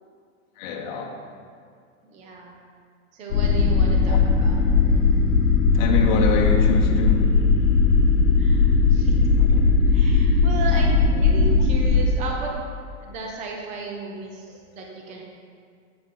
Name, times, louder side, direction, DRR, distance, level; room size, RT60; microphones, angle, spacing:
voice 1, 0.6-1.1 4.1-4.2 5.7-7.3 9.5-9.6, left 4 dB, 40° left, 0 dB, 1.1 m, -25 dB
voice 2, 2.0-2.5 3.1-4.7 8.4-8.6 8.9-9.1 9.9-12.5 13.0-15.2, right 3 dB, 20° right, -1 dB, 0.8 m, -34 dB
sound 1, 3.3-12.1, left 4 dB, 85° left, 1.1 m, -18 dB
11.0 x 7.9 x 3.9 m, 2.2 s
supercardioid pair, 170°, 37 cm